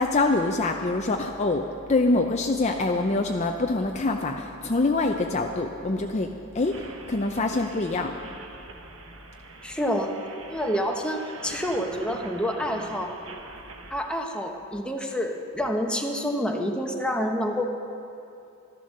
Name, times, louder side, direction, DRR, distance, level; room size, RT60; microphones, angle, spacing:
voice 1, 0.0-8.1, left 2 dB, 30° left, 3 dB, 0.6 m, -25 dB
sound 1, 6.6-13.9, right 3 dB, 70° right, 1.2 m, -44 dB
voice 2, 9.6-10.1 10.5-13.1 13.9-17.7, equal, 5° left, 1 dB, 1.0 m, -28 dB
13.5 x 11.5 x 6.5 m, 2.7 s
head